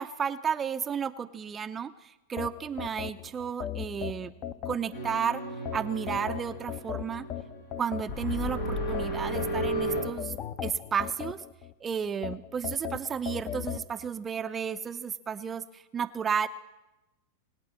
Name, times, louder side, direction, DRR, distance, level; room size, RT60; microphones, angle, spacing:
voice 1, 0.0-4.3 4.7-5.4 5.7-7.3 7.8-10.3 10.6-11.4 11.8-16.5, right 7 dB, 25° right, 9 dB, 0.5 m, -32 dB
sound 1, 2.4-5.2 5.7-8.4 8.9-11.7 12.2-13.9, left 10 dB, 35° left, 0.7 m, -37 dB
sound 2, 4.9-10.0, equal, 90° left, 5.5 m, -34 dB
21.0 x 8.9 x 7.4 m, 1.0 s
hypercardioid pair, 115°, 0 cm